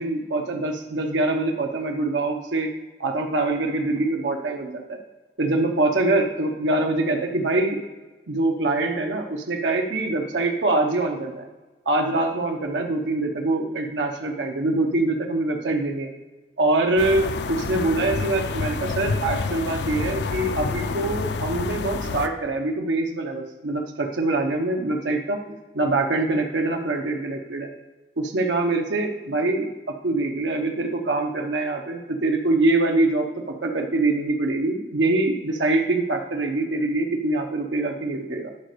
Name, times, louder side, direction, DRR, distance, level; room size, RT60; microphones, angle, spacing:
voice 1, 0.0-2.7 3.0-5.0 5.4-7.8 8.3-11.4 11.9-16.1 16.6-27.7 28.2-33.3 33.6-38.5, right 2 dB, 90° right, 2 dB, 0.9 m, -24 dB
sound 1, 17.0-22.3, left 4 dB, 70° left, 0.5 m, -28 dB
11.0 x 4.1 x 6.7 m, 1.2 s
head